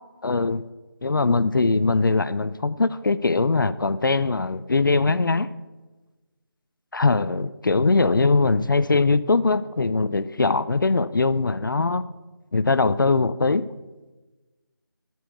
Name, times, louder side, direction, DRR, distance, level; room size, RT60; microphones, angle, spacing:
voice 1, 0.2-0.6 1.0-5.5 6.9-12.0 12.5-13.7, left 3 dB, 60° left, 16 dB, 0.5 m, -21 dB
12.5 x 7.1 x 8.3 m, 1.2 s
figure-of-eight pair, 165°, 13 cm